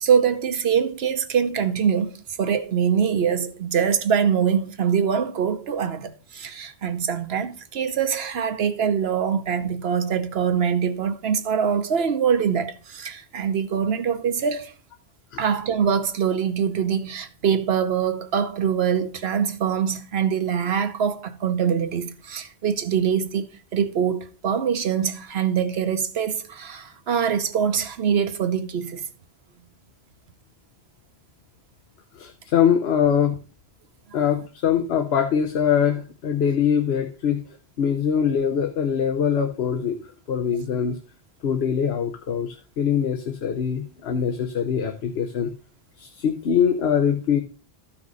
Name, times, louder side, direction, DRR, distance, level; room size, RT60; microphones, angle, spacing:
voice 1, 0.0-14.7 15.4-29.0 34.1-34.3, right 7 dB, 80° right, 1.1 m, -24 dB
voice 2, 32.2-33.4 34.1-37.4 37.8-40.0 40.3-41.0 41.4-45.5 46.0-47.4, left 8 dB, 85° left, 1.0 m, -23 dB
13.0 x 5.8 x 4.0 m
omnidirectional pair, 1.0 m